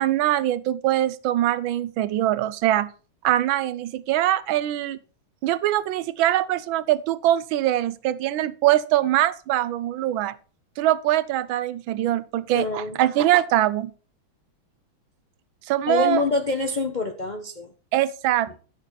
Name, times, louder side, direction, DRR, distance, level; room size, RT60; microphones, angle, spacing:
voice 1, 0.0-2.9 3.2-5.0 5.4-10.3 10.8-13.9 15.7-16.2 17.9-18.6, right 13 dB, 80° right, 1.3 m, -23 dB
voice 2, 12.5-13.0 15.9-17.7, left 3 dB, 55° left, 0.5 m, -26 dB
11.5 x 6.7 x 4.0 m
omnidirectional pair, 2.2 m